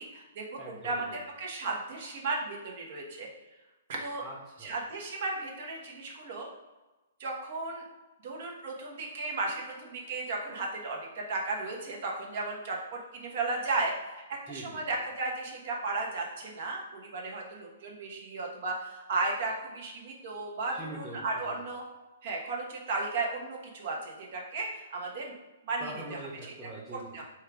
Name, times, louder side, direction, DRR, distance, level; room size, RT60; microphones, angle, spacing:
voice 1, 0.0-1.0 1.4-3.3 3.9-4.2 4.6-6.5 7.2-7.8 8.2-21.8 22.2-25.3 25.7-26.2 27.1-27.2, right 3 dB, 60° right, 0 dB, 1.1 m, -35 dB
voice 2, 0.6-1.2 4.2-4.7 14.5-14.8 20.7-21.6 25.8-27.2, right 1 dB, 10° right, -8 dB, 0.9 m, -43 dB
4.4 x 2.4 x 4.7 m, 1.1 s
hypercardioid pair, 130°, 0 cm